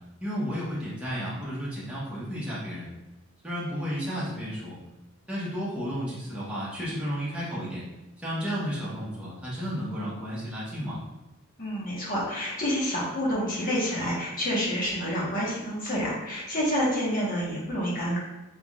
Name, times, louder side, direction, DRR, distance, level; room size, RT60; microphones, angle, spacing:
voice 1, 0.2-2.9 3.4-4.8 5.3-7.8 8.2-11.0, equal, 5° right, -8 dB, 1.0 m, -32 dB
voice 2, 11.6-18.2, equal, 40° left, -6 dB, 1.2 m, -28 dB
3.5 x 3.4 x 2.4 m, 1.1 s
head